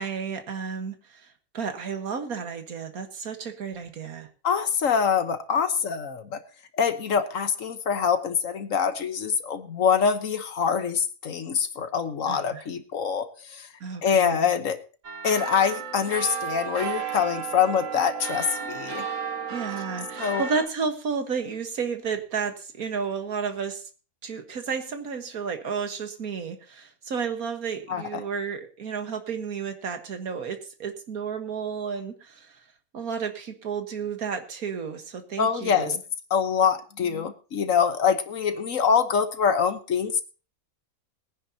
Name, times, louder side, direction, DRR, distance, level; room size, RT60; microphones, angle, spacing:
voice 1, 0.0-4.3 12.3-12.6 13.8-14.5 19.5-23.9 24.2-32.6 32.9-36.0, right 6 dB, 85° right, 6 dB, 2.0 m, -32 dB
voice 2, 4.4-6.4 6.7-13.7 14.0-14.8 15.2-19.0 20.2-20.4 27.9-28.2 35.4-36.0 36.3-40.2, left 7 dB, 65° left, 9 dB, 1.5 m, -25 dB
sound 1, 15.0-20.7, right 6 dB, 65° right, 1.7 m, -33 dB
21.5 x 9.9 x 2.8 m, 0.35 s
omnidirectional pair, 1.5 m